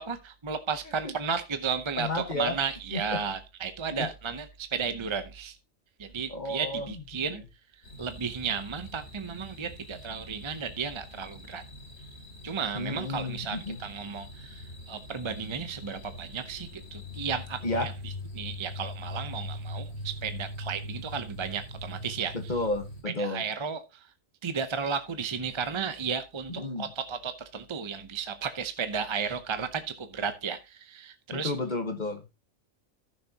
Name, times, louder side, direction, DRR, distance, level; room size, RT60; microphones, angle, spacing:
voice 1, 0.0-5.6 6.0-7.4 8.0-11.6 12.4-22.3 23.2-24.0 24.4-31.5, right 6 dB, 30° right, 9 dB, 0.6 m, -34 dB
voice 2, 2.0-2.6 2.9-3.2 3.9-4.1 6.3-7.4 12.7-13.8 17.6-17.9 22.3-23.4 26.5-26.9 31.3-32.2, left 2 dB, 35° left, 6 dB, 1.4 m, -32 dB
sound 1, 7.8-23.0, left 1 dB, 50° left, 3.1 m, -42 dB
14.5 x 6.4 x 2.8 m, 0.26 s
omnidirectional pair, 1.4 m